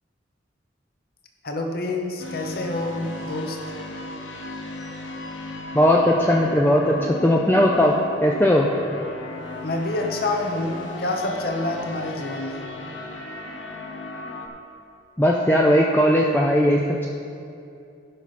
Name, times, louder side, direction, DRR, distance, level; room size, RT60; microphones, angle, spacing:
voice 1, 1.4-3.6 9.6-12.6, left 2 dB, 50° left, 2 dB, 1.0 m, -27 dB
sound 1, 2.2-14.5, left 2 dB, 75° left, 0.9 m, -36 dB
voice 2, 5.7-7.9 8.2-8.7 15.2-17.1, equal, 10° left, -2 dB, 0.5 m, -18 dB
16.0 x 5.8 x 4.2 m, 2.6 s
head